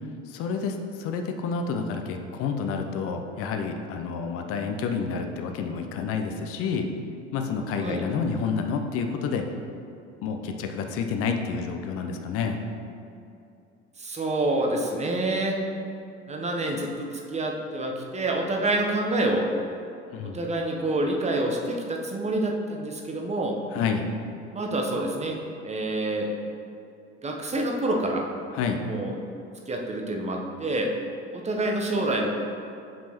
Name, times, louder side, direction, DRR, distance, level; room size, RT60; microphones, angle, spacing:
voice 1, 0.3-6.9 7.3-9.5 10.2-12.6 20.1-20.4 23.7-24.1 28.5-28.8, left 5 dB, 40° left, 5 dB, 0.6 m, -29 dB
voice 2, 14.0-15.6 16.3-19.5 20.2-23.6 24.5-25.4 25.6-26.3 27.2-28.2 28.8-29.1 29.7-30.9 31.3-32.3, right 2 dB, 20° right, 1 dB, 0.9 m, -27 dB
7.4 x 5.4 x 3.0 m, 2.5 s
figure-of-eight pair, 65°, 34 cm